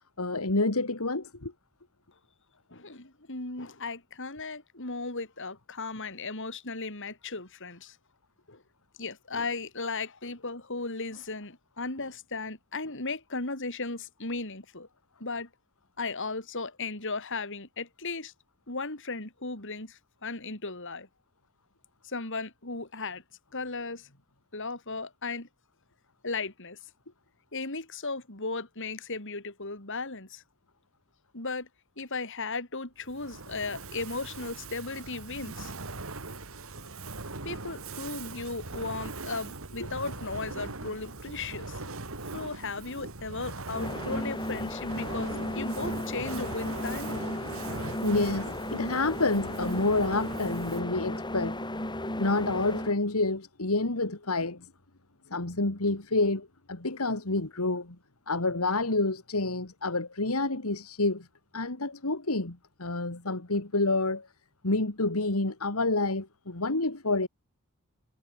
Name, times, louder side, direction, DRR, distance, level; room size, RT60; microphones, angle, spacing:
voice 1, 0.2-1.5 45.6-45.7 48.0-51.7 52.2-54.7 55.3-58.0 58.3-61.3 61.5-64.3 64.6-67.3, left 2 dB, 75° left, 2.4 m, -28 dB
voice 2, 2.7-8.0 8.5-8.6 9.0-14.9 15.2-15.5 16.0-18.3 18.7-21.1 22.0-23.2 23.5-24.1 24.5-25.5 26.2-26.8 27.5-30.4 31.3-31.7 32.0-35.7 36.7-36.9 37.4-41.9 42.3-47.1, left 3 dB, 60° left, 4.8 m, -36 dB
Fire, 33.0-51.0, right 3 dB, 65° right, 2.8 m, -40 dB
sound 1, 43.7-53.0, left 1 dB, 20° left, 5.8 m, -35 dB
head